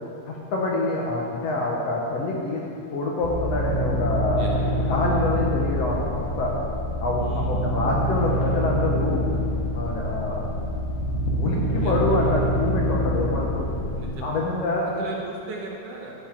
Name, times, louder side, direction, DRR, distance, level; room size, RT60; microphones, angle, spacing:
voice 1, 0.3-2.6 2.9-4.4 4.9-6.5 7.0-9.3 9.7-10.4 11.4-13.6 14.2-14.9, left 2 dB, 65° left, -3 dB, 1.8 m, -26 dB
sound 1, 3.2-14.1, equal, 85° left, 3.2 m, -26 dB
voice 2, 7.2-7.6 11.8-11.9 13.9-14.4 14.8-16.1, right 3 dB, 70° right, -1 dB, 1.5 m, -37 dB
13.0 x 8.0 x 4.4 m, 2.5 s
omnidirectional pair, 3.8 m